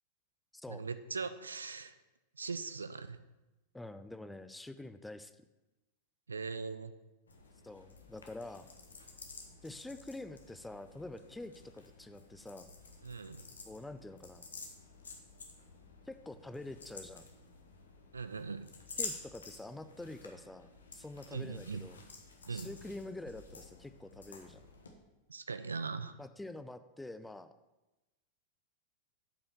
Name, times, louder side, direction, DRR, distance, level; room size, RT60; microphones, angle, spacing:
voice 1, 0.7-1.9 2.4-3.2 6.3-6.9 13.0-13.5 18.1-18.7 21.3-21.8 22.5-22.7 25.3-26.1, right 4 dB, 75° right, 12 dB, 0.5 m, -40 dB
voice 2, 3.7-5.4 7.6-8.7 9.6-12.7 13.7-14.5 16.1-17.3 19.0-22.0 22.5-24.6 26.2-27.5, left 2 dB, 5° left, 11 dB, 0.5 m, -46 dB
sound 1, 7.3-24.9, left 3 dB, 70° left, 1.3 m, -50 dB
8.4 x 5.6 x 6.7 m, 1.0 s
figure-of-eight pair, 90°, 0 cm